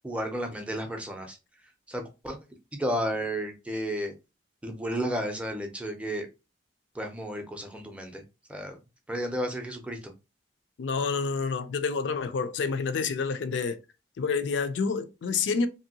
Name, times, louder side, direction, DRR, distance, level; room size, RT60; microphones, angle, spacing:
voice 1, 0.0-1.4 1.9-2.4 2.7-4.1 4.6-6.3 6.9-8.2 8.5-8.7 9.1-10.1, equal, 5° right, 0.5 m, -32 dB
voice 2, 10.8-13.8 14.2-15.7, left 5 dB, 75° left, 0.4 m, -28 dB
2.9 x 2.7 x 2.7 m
head